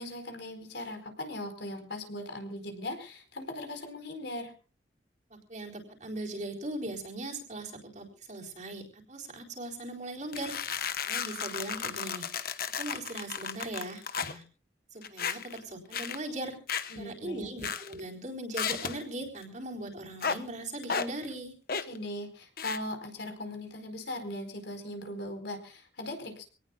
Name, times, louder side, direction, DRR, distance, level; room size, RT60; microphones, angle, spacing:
voice 1, 0.0-4.5 16.9-17.5 21.8-26.4, left 1 dB, 70° left, 6 dB, 4.6 m, -39 dB
voice 2, 5.3-10.6 11.1-12.3 12.8-14.4 14.9-16.6 17.0-21.5, right 1 dB, 40° right, -1 dB, 4.2 m, -39 dB
sound 1, 10.3-14.4 15.0-15.6 15.9-16.2 16.7-17.0 17.6-18.0 18.5-19.0 20.2-20.4 20.8-21.1 21.7-22.0 22.6-22.8, left 6 dB, 50° left, 1.1 m, -34 dB
26.5 x 18.5 x 2.4 m, 0.35 s
head